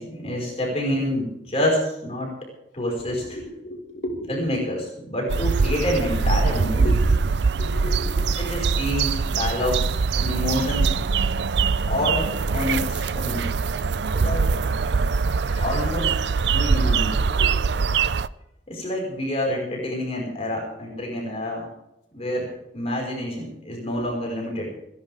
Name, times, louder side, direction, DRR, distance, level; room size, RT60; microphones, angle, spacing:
voice 1, 0.0-2.3 2.7-3.2 4.3-7.0 8.3-11.0 11.9-13.4 14.1-14.5 15.5-16.1 16.5-17.2 18.7-21.7 22.1-22.5 22.7-24.7, left 1 dB, 35° left, -1 dB, 5.2 m, -27 dB
voice 2, 3.0-4.4 6.8-7.2 7.5-8.4 17.4-17.6 23.8-24.1, equal, 65° left, -1 dB, 4.8 m, -35 dB
sound 1, 5.3-18.3, right 5 dB, 65° right, 0.5 m, -23 dB
29.0 x 11.0 x 3.6 m, 0.86 s
head